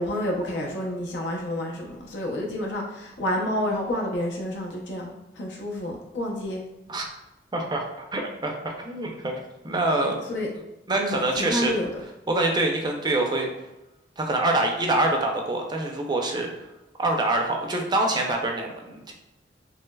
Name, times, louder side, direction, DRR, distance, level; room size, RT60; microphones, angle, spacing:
voice 1, 0.0-6.6 10.3-10.5 11.0-11.9, left 1 dB, 75° left, -1 dB, 0.6 m, -29 dB
voice 2, 7.5-9.4 9.6-10.2 10.9-11.7 12.3-13.5 14.2-16.5 17.0-19.1, right 2 dB, 25° right, 1 dB, 0.4 m, -25 dB
3.2 x 2.8 x 2.2 m, 0.96 s
head